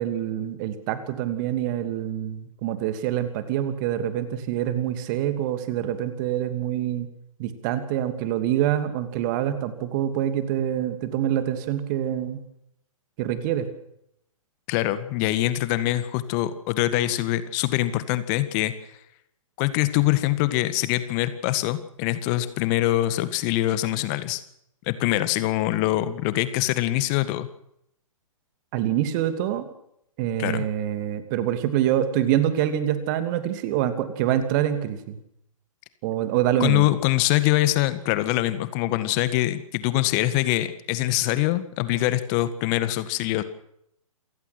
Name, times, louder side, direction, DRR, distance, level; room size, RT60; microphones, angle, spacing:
voice 1, 0.0-7.1 7.4-12.4 13.2-13.7 28.7-29.7 30.2-35.2 36.0-36.9, right 11 dB, 35° right, 9 dB, 2.8 m, -25 dB
voice 2, 14.7-19.0 19.6-24.4 24.9-27.5 30.4-30.7 36.6-43.4, left 15 dB, 30° left, 13 dB, 1.7 m, -24 dB
28.0 x 16.0 x 6.1 m, 0.74 s
figure-of-eight pair, 125°, 18 cm